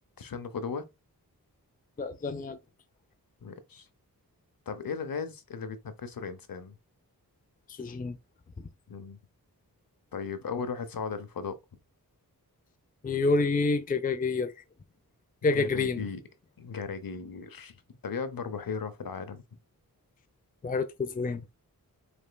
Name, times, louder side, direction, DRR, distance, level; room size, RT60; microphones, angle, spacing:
voice 1, 0.2-0.9 3.4-3.9 4.7-6.7 8.9-9.2 10.1-11.6 15.5-16.2 16.6-19.4, left 5 dB, 65° left, 0.8 m, -36 dB
voice 2, 2.0-2.6 7.8-8.2 13.0-14.5 15.4-16.0 20.6-21.4, left 3 dB, 25° left, 0.4 m, -28 dB
5.1 x 3.5 x 2.2 m
wide cardioid pair, 85°, 37 cm